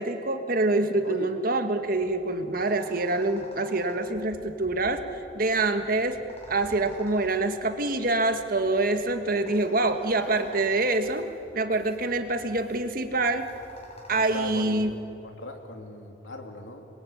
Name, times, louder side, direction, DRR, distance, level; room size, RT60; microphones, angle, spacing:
voice 1, 0.0-5.0 5.3-6.2 6.5-11.3 11.5-13.5 14.1-14.9, right 2 dB, 50° right, 7 dB, 1.7 m, -26 dB
sound 1, 1.8-15.0, left 1 dB, 35° left, 5.2 m, -50 dB
voice 2, 14.1-16.9, left 1 dB, 85° left, 4 dB, 3.0 m, -39 dB
28.0 x 22.0 x 8.6 m, 2.9 s
head